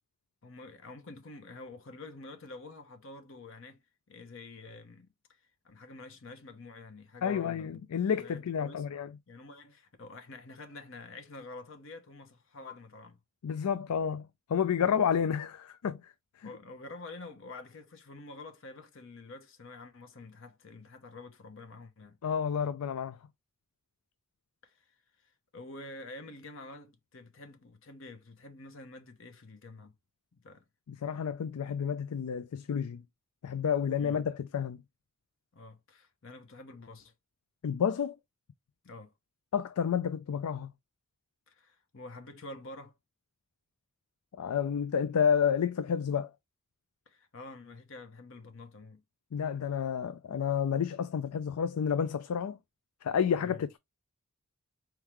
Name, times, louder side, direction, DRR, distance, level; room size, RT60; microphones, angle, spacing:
voice 1, 0.4-3.8 4.1-7.8 8.2-8.8 9.3-13.2 16.4-22.2 24.6-24.9 25.2-29.9 30.3-30.6 34.0-34.2 35.5-37.1 38.8-39.1 41.5-42.9 47.1-49.0 53.4-53.6, left 2 dB, 60° left, 0.8 m, -48 dB
voice 2, 7.2-9.1 13.4-16.1 16.4-16.5 22.2-23.2 30.9-33.0 33.4-34.8 37.6-38.2 39.5-40.7 44.4-46.3 49.3-52.6 53.0-53.8, left 7 dB, 90° left, 0.4 m, -30 dB
4.5 x 3.6 x 3.0 m
head